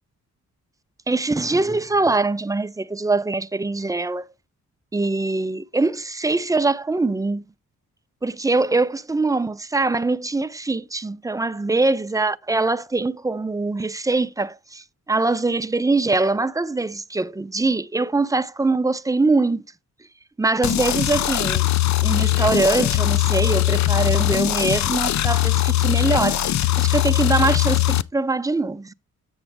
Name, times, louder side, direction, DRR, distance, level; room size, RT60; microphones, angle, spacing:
voice 1, 1.1-4.3 4.9-7.5 8.2-19.6 20.4-21.7 22.0-28.9, right 3 dB, 10° right, 0.4 m, -23 dB
sound 1, 20.6-28.0, left 14 dB, 60° left, 0.5 m, -20 dB
7.9 x 7.0 x 3.4 m
cardioid pair, 90°, 31 cm